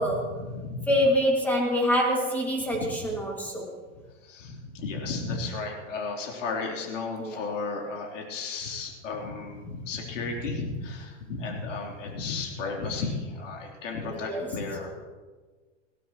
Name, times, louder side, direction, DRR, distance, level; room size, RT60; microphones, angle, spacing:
voice 1, 0.0-0.9 2.8-2.9 4.2-15.0, left 3 dB, 85° left, -1 dB, 3.7 m, -34 dB
voice 2, 0.9-3.7 7.2-7.4 14.0-14.5, equal, 5° left, -1 dB, 2.2 m, -25 dB
20.5 x 16.0 x 3.1 m, 1.4 s
supercardioid pair, 155°, 37 cm